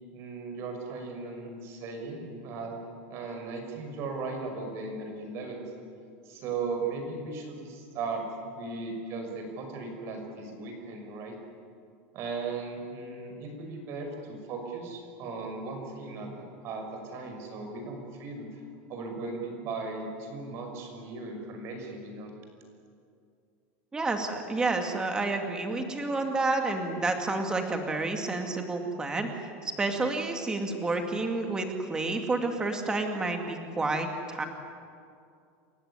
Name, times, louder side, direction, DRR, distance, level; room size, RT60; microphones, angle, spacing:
voice 1, 0.1-2.8 3.1-5.6 6.3-8.2 8.6-11.4 12.1-18.6 18.9-22.3, right 4 dB, 40° right, 3 dB, 5.7 m, -37 dB
voice 2, 23.9-29.3 29.6-34.4, right 3 dB, 10° right, 4 dB, 2.3 m, -30 dB
29.0 x 15.5 x 9.7 m, 2.4 s
supercardioid pair, 165°, 7 cm